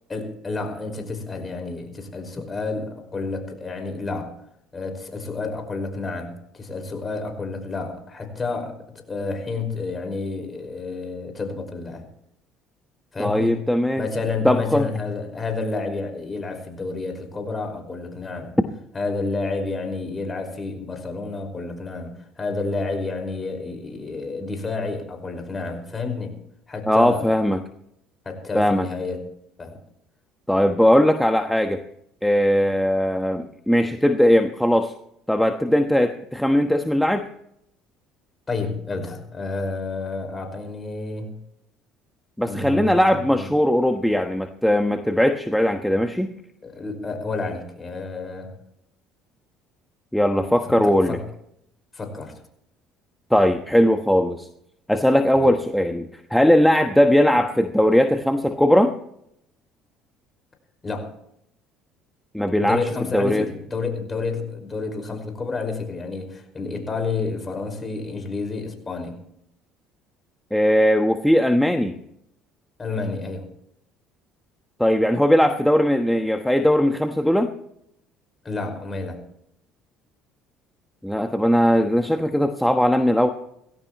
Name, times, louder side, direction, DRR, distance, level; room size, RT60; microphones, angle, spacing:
voice 1, 0.1-4.3 4.7-8.8 9.1-12.0 13.1-13.6 13.9-18.5 18.9-26.4 26.7-27.3 28.3-29.2 29.6-29.8 38.5-41.3 42.4-43.5 46.6-48.5 50.6-51.2 51.9-52.3 55.4-55.5 60.8-61.1 62.6-69.1 72.8-73.5 78.4-79.2, left 3 dB, 25° left, 4 dB, 5.3 m, -30 dB
voice 2, 13.2-14.0 14.4-14.9 26.9-27.6 28.5-28.9 30.5-31.8 32.2-34.9 35.3-37.3 42.4-46.3 50.1-51.2 53.3-54.5 54.9-58.9 62.3-62.8 63.1-63.5 70.5-72.0 74.8-77.5 81.0-83.3, equal, 5° left, 5 dB, 1.3 m, -19 dB
19.5 x 16.5 x 3.1 m, 0.75 s
supercardioid pair, 80°, 0 cm